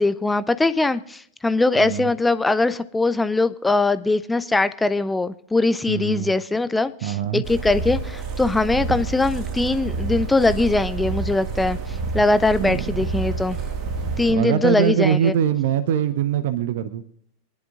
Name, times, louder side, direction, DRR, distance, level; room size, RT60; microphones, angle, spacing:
voice 1, 0.0-13.6 14.2-15.3, left 2 dB, 10° left, 14 dB, 0.4 m, -21 dB
voice 2, 1.8-2.1 5.9-6.3 7.0-7.4 12.6-13.1 14.3-17.0, right 9 dB, 55° right, 14 dB, 0.6 m, -23 dB
sound 1, 7.4-14.3, right 4 dB, 35° right, 1.9 m, -28 dB
23.5 x 11.0 x 2.5 m, 0.64 s
figure-of-eight pair, 90°, 0 cm